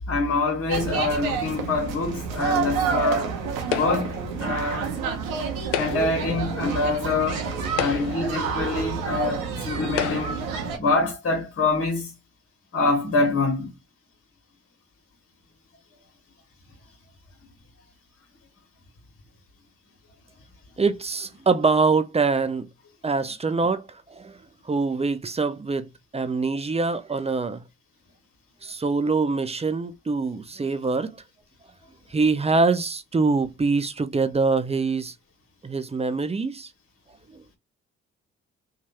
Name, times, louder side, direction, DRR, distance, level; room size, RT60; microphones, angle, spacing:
voice 1, 0.1-3.3 3.7-4.9 5.8-7.4 7.7-10.4 10.8-12.1 12.7-13.7, left 3 dB, 40° left, 1.4 m, -25 dB
sound 1, 0.7-10.8, right 5 dB, 85° right, 0.9 m, -29 dB
sound 2, 3.7-4.2 5.6-6.3 7.1-7.2 7.7-8.4 9.2-9.3 9.9-10.5, left 10 dB, 85° left, 0.5 m, -30 dB
voice 2, 20.8-22.7 23.0-23.8 24.1-24.4 24.7-27.6 28.6-31.2 32.1-35.1 35.6-36.7 37.3-37.4, right 4 dB, 20° right, 0.6 m, -24 dB
3.1 x 2.4 x 4.2 m
hypercardioid pair, 45°, 34 cm